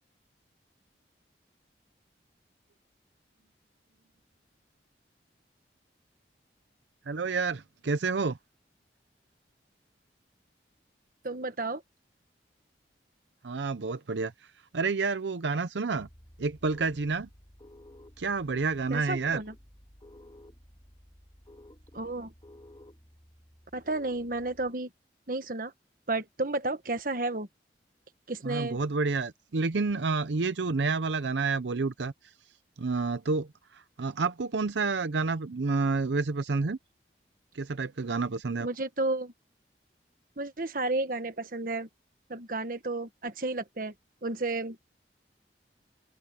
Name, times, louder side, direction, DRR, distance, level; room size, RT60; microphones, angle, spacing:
voice 1, 7.1-8.4 13.4-16.1 16.4-17.3 18.2-19.4 28.4-32.1 32.8-36.8 37.5-38.7, right 4 dB, 85° right, 0.6 m, -29 dB
voice 2, 11.2-11.8 18.9-19.5 21.9-22.3 23.7-24.9 25.3-25.7 26.1-27.5 28.3-28.8 38.6-39.3 40.4-41.9 42.3-43.9 44.2-44.8, right 2 dB, 50° right, 1.4 m, -32 dB
sound 1, 15.9-24.7, left 1 dB, 25° left, 3.0 m, -54 dB
head